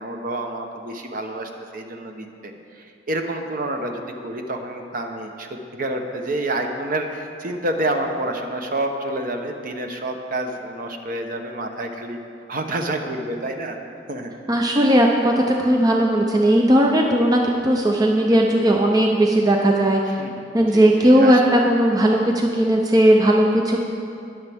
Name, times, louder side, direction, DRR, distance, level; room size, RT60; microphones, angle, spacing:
voice 1, 0.0-2.5 2.8-12.2 12.5-13.8 14.1-14.3 20.1-20.4 20.7-21.3, right 1 dB, 45° right, 4 dB, 0.9 m, -28 dB
voice 2, 14.5-20.0 20.5-23.8, right 1 dB, 20° right, 1 dB, 0.6 m, -17 dB
21.0 x 7.2 x 3.5 m, 2.5 s
head